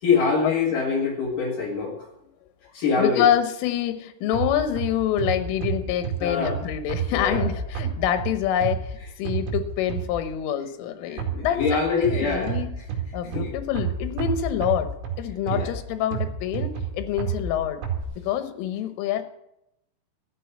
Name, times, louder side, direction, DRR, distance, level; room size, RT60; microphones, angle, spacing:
voice 1, 0.0-2.0 2.7-3.3 6.2-6.6 7.1-7.5 11.1-12.6 13.3-13.5 15.5-15.7, left 5 dB, 55° left, 0 dB, 2.9 m, -24 dB
voice 2, 3.0-12.7 13.1-14.9 15.2-17.8 18.2-19.2, left 10 dB, 90° left, 10 dB, 3.6 m, -26 dB
sound 1, 4.3-10.4 11.2-18.0, right 6 dB, 70° right, 4.6 m, -31 dB
13.0 x 8.2 x 8.5 m, 0.81 s
omnidirectional pair, 5.6 m